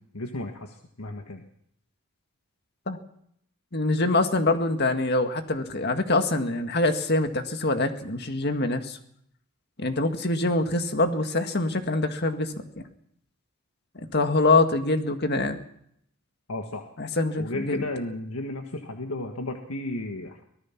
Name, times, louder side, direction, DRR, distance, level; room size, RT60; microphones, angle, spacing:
voice 1, 0.0-1.4 16.5-16.8 17.4-20.4, left 1 dB, 85° left, 3 dB, 1.7 m, -34 dB
voice 2, 3.7-9.0 9.8-12.5 14.0-15.6 17.0-17.8, left 2 dB, 50° left, 6 dB, 1.9 m, -24 dB
24.5 x 18.0 x 6.0 m, 0.70 s
head